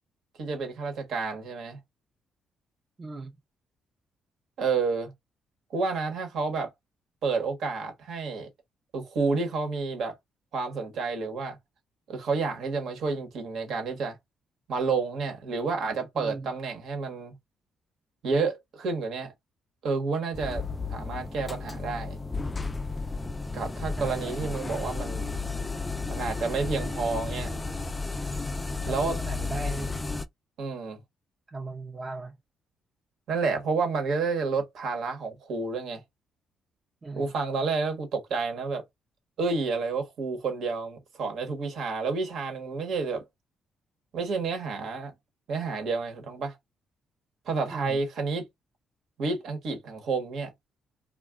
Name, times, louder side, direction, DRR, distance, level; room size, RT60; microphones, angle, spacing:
voice 1, 0.4-1.8 4.6-5.1 5.7-6.7 7.2-8.5 8.9-10.2 10.5-11.6 12.1-14.2 14.7-17.3 18.2-19.3 19.8-20.6 20.9-22.2 23.5-25.3 26.1-27.5 28.9-29.2 30.6-31.0 33.3-36.0 37.1-38.8 39.4-43.3 44.1-45.1 45.5-46.6 47.5-48.5 49.2-50.5, right 4 dB, 70° right, 1.1 m, -30 dB
voice 2, 3.0-3.3 16.1-16.5 24.0-24.4 28.9-29.9 31.5-32.4 37.0-37.3 47.7-48.0, right 3 dB, 30° right, 0.6 m, -37 dB
sound 1, 20.3-30.2, left 3 dB, 20° left, 0.3 m, -33 dB
2.4 x 2.2 x 3.5 m
cardioid pair, 90°, 0 cm